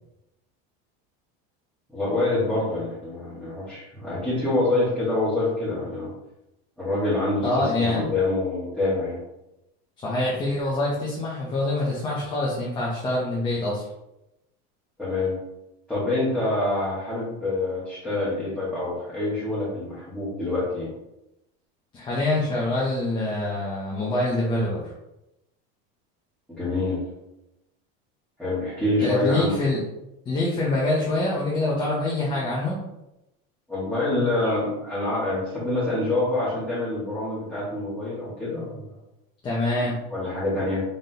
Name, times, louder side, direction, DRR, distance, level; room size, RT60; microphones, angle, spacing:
voice 1, 1.9-6.1 6.8-9.2 15.0-15.3 15.9-20.9 26.5-27.0 28.4-29.5 33.7-38.9 39.8-40.8, left 2 dB, ahead, -13 dB, 1.4 m, -26 dB
voice 2, 7.4-8.0 10.0-13.8 21.9-24.9 29.0-29.8 30.3-32.8 39.4-40.0, left 2 dB, 15° left, -6 dB, 0.6 m, -25 dB
3.8 x 3.5 x 2.8 m, 0.91 s
cardioid pair, 165°, 30 cm